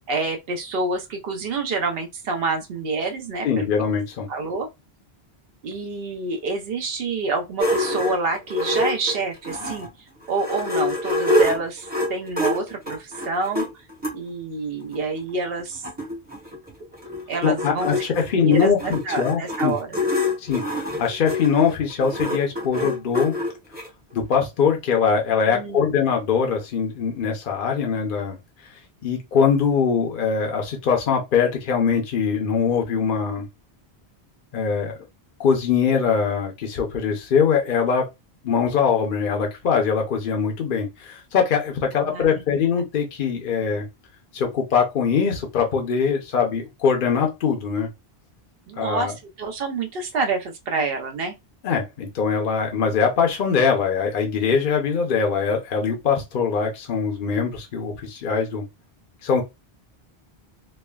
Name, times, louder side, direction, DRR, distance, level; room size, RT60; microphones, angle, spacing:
voice 1, 0.1-3.7 4.3-4.7 5.6-9.9 10.3-13.8 14.1-15.9 17.3-17.9 18.3-19.9 25.5-26.0 42.0-42.6 48.7-51.4, right 3 dB, 70° right, 0.9 m, -27 dB
voice 2, 3.4-4.3 17.4-19.8 20.4-23.3 24.1-28.4 29.0-33.5 34.5-34.9 35.4-38.1 38.4-43.8 44.3-47.9 48.8-49.1 51.6-58.6 59.2-59.4, left 6 dB, 60° left, 0.8 m, -22 dB
sound 1, 7.6-9.9 10.3-14.1 14.9-15.0 15.3-15.4 15.6-23.9, left 1 dB, 10° right, 0.7 m, -26 dB
3.2 x 2.0 x 2.2 m
omnidirectional pair, 1.1 m